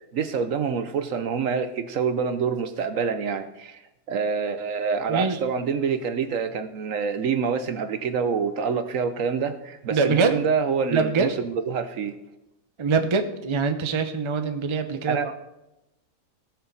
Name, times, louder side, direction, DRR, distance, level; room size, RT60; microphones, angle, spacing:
voice 1, 0.1-3.8 4.1-12.1 15.1-15.3, right 6 dB, 60° right, 10 dB, 1.1 m, -26 dB
voice 2, 5.1-5.4 9.9-10.4 10.9-11.3 12.8-15.4, right 4 dB, 30° right, 7 dB, 0.6 m, -24 dB
17.5 x 6.7 x 4.1 m, 0.93 s
omnidirectional pair, 1.6 m